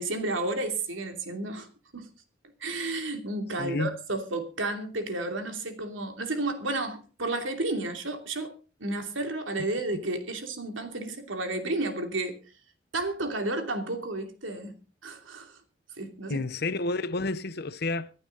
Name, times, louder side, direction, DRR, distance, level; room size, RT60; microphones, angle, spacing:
voice 1, 0.0-1.7 1.9-2.1 2.6-8.5 8.8-12.4 12.9-14.8 15.0-15.5 16.0-16.4, right 2 dB, 75° right, 2.8 m, -32 dB
voice 2, 3.6-4.0 9.9-10.0 16.3-18.1, left 2 dB, 50° left, 0.8 m, -30 dB
25.0 x 8.8 x 4.0 m
head